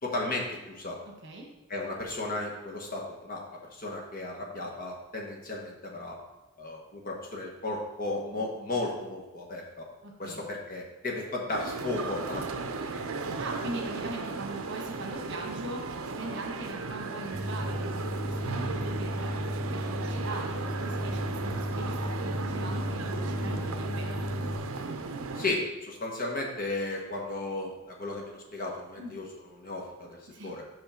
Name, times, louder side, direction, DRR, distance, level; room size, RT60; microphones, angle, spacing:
voice 1, 0.0-1.0 1.7-6.2 6.6-9.8 10.2-13.0 25.3-29.3 29.6-30.2 30.4-30.6, left 2 dB, 40° left, -1 dB, 1.2 m, -35 dB
voice 2, 1.0-1.5 10.0-10.4 13.4-19.3 19.7-24.1 29.0-29.1 30.3-30.5, right 2 dB, 55° right, 0 dB, 1.3 m, -41 dB
sound 1, 11.5-25.5, right 3 dB, 70° right, 0.6 m, -36 dB
sound 2, 17.3-24.6, equal, 10° left, 1.8 m, -34 dB
5.7 x 5.6 x 4.4 m, 1.0 s
head